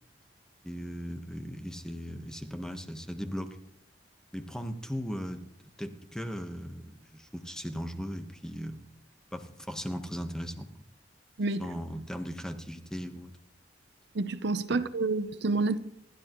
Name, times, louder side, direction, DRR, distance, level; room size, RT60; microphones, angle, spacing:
voice 1, 0.6-3.6 4.3-5.5 5.8-8.8 9.3-10.7 11.6-13.3, equal, 5° left, 1.2 m, -38 dB
voice 2, 14.1-15.8, right 3 dB, 65° right, 0.7 m, -28 dB
27.5 x 12.0 x 3.1 m
head